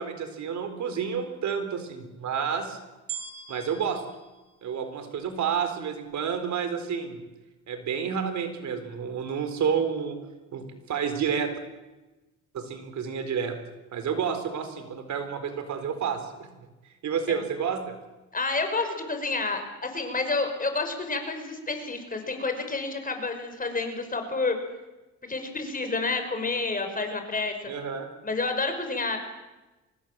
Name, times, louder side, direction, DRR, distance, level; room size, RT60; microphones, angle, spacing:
voice 1, 0.0-2.8 3.5-4.0 4.6-7.2 7.7-10.2 10.5-11.5 12.5-13.6 13.9-16.5 16.8-18.0 27.7-28.1, right 7 dB, 70° right, 8 dB, 4.0 m, -30 dB
sound 1, 3.1-5.5 6.1-6.2, right 7 dB, 55° right, 5.5 m, -42 dB
voice 2, 18.3-24.6 25.3-27.5 28.2-29.2, left 3 dB, 30° left, 6 dB, 5.4 m, -29 dB
25.0 x 20.0 x 7.5 m, 1.1 s
cardioid pair, 90°, 30 cm